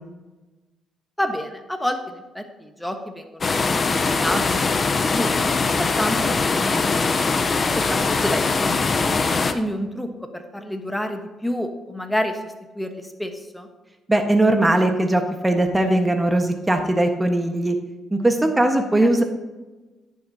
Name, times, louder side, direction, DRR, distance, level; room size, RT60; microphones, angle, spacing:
voice 1, 1.2-7.1 7.7-9.0 9.3-13.7 19.0-19.1, equal, 5° left, 5 dB, 1.2 m, -29 dB
sound 1, 3.4-9.5, left 4 dB, 35° left, 0.8 m, -21 dB
voice 2, 14.1-17.8 18.1-19.2, right 1 dB, 15° right, 5 dB, 1.4 m, -19 dB
10.5 x 9.4 x 2.9 m, 1.2 s
cardioid pair, 90°, 0 cm